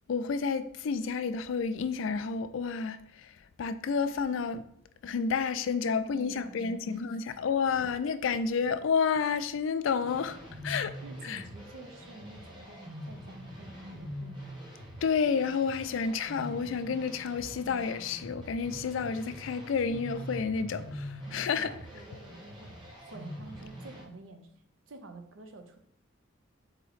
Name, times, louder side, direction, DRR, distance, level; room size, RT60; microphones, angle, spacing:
voice 1, 0.1-3.3 3.6-4.6 5.0-10.4 10.6-11.0 11.2-11.4 15.0-21.7, left 5 dB, 75° left, 0.3 m, -30 dB
voice 2, 6.0-7.2 7.8-7.9 11.0-14.6 21.3-24.5 24.9-25.8, right 2 dB, 85° right, 0.6 m, -49 dB
sound 1, 10.0-24.0, equal, 25° right, 1.1 m, -44 dB
4.2 x 2.9 x 4.1 m
head